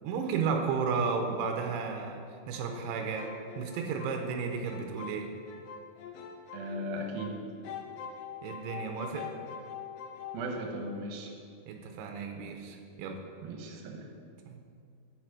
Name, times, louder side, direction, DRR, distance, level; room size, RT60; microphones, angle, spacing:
voice 1, 0.0-2.2 2.5-3.3 3.6-5.3 8.4-9.3 11.7-13.2 14.5-14.6, right 5 dB, 90° right, 3 dB, 2.7 m, -33 dB
sound 1, 2.5-7.4 7.6-10.4, left 7 dB, 80° left, 2.1 m, -44 dB
voice 2, 6.5-7.4 10.3-11.3 13.4-14.1, right 1 dB, 75° right, 2 dB, 2.6 m, -37 dB
7.4 x 7.2 x 4.9 m, 2.3 s
omnidirectional pair, 4.7 m